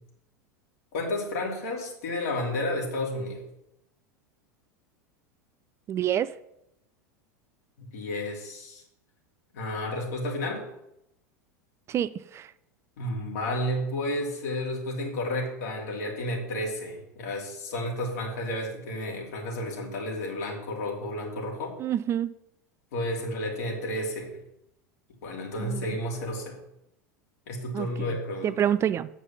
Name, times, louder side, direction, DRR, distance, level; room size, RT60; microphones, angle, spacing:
voice 1, 0.9-3.4 7.8-8.8 9.5-10.6 13.0-21.7 22.9-24.4 25.2-26.6 27.5-28.6, left 1 dB, 65° left, -1 dB, 3.0 m, -31 dB
voice 2, 5.9-6.3 11.9-12.5 21.8-22.3 25.6-25.9 27.7-28.1 28.4-29.1, right 10 dB, 30° right, 14 dB, 0.4 m, -27 dB
8.1 x 5.3 x 7.1 m, 0.83 s
figure-of-eight pair, 85°, 9 cm